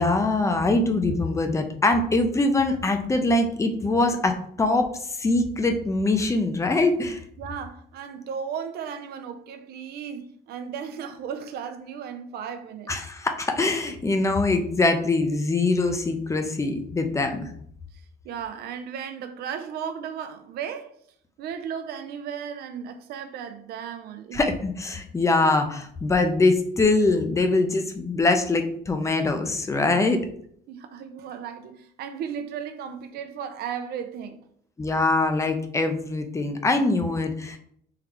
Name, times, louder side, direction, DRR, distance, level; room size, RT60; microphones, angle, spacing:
voice 1, 0.0-7.2 12.9-17.5 24.3-30.2 34.8-37.6, left 2 dB, 15° left, 0.5 m, -23 dB
voice 2, 7.4-12.9 17.9-20.9 21.4-24.4 30.7-34.4, right 7 dB, 70° right, 0.6 m, -35 dB
3.8 x 3.2 x 3.0 m
cardioid pair, 110°, 17 cm